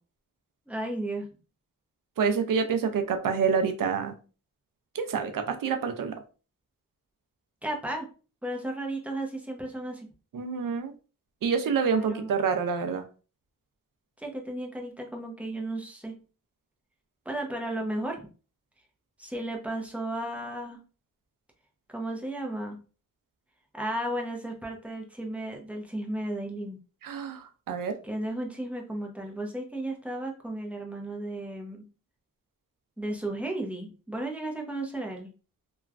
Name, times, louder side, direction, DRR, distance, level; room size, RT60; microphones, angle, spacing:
voice 1, 0.7-1.3 7.6-8.1 8.4-10.1 11.9-12.3 14.2-16.1 17.3-18.3 19.2-20.8 21.9-22.8 23.7-26.8 28.0-31.8 33.0-35.3, right 1 dB, 5° right, 1 dB, 0.7 m, -34 dB
voice 2, 2.2-4.2 4.9-6.1 10.3-10.9 11.4-13.0 27.0-28.0, right 6 dB, 85° right, 8 dB, 0.5 m, -27 dB
3.0 x 2.3 x 2.4 m, 0.35 s
wide cardioid pair, 85°, 32 cm